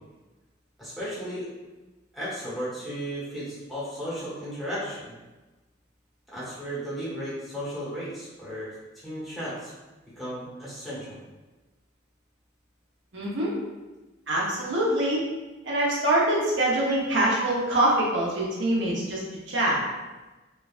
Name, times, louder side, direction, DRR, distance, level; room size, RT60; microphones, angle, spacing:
voice 1, 0.8-1.5 2.1-5.1 6.3-8.7 9.0-9.7 10.2-11.2, equal, ahead, -10 dB, 1.0 m, -34 dB
voice 2, 13.1-13.5 14.3-15.2 15.6-19.8, right 1 dB, 70° right, -5 dB, 0.8 m, -24 dB
3.2 x 2.2 x 2.4 m, 1.2 s
head